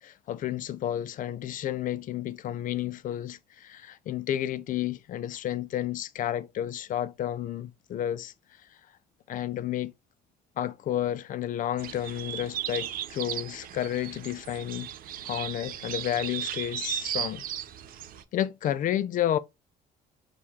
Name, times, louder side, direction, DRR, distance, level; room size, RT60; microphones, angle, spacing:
voice 1, 0.0-8.6 9.3-9.9 10.6-14.9 15.2-17.4 18.3-19.4, left 11 dB, 50° left, 0.4 m, -31 dB
sound 1, 11.8-18.2, right 11 dB, 60° right, 0.5 m, -36 dB
6.4 x 2.4 x 2.8 m
cardioid pair, 110°, 17 cm